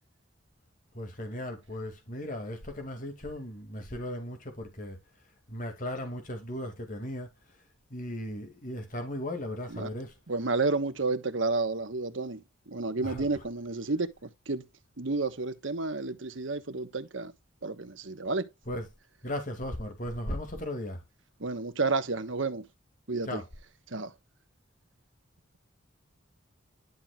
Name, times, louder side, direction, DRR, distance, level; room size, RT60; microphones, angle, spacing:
voice 1, 0.9-5.0 5.5-7.3 7.9-10.2 13.0-13.3 18.7-18.9 19.2-21.0 23.3-23.4, left 1 dB, 40° left, 2.2 m, -36 dB
voice 2, 10.3-14.7 15.0-17.3 17.6-18.5 21.4-22.6 23.1-23.4 23.9-24.1, right 3 dB, 70° right, 1.2 m, -31 dB
11.0 x 5.9 x 2.3 m
head